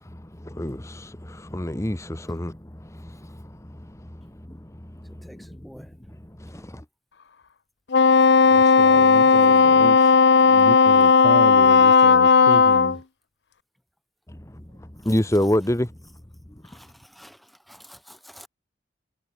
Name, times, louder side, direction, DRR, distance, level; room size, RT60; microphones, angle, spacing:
voice 1, 0.0-5.9 6.2-6.8 14.3-15.9 16.7-16.8, left 1 dB, 15° left, 1.2 m, -29 dB
voice 2, 5.2-6.2 6.5-6.8 8.9-10.0 16.6-18.5, equal, ahead, 2.8 m, -46 dB
Wind instrument woodwind instrument, 7.9-13.0, left 5 dB, 75° left, 0.7 m, -15 dB
voice 3, 8.5-13.0, right 2 dB, 40° right, 0.7 m, -33 dB
head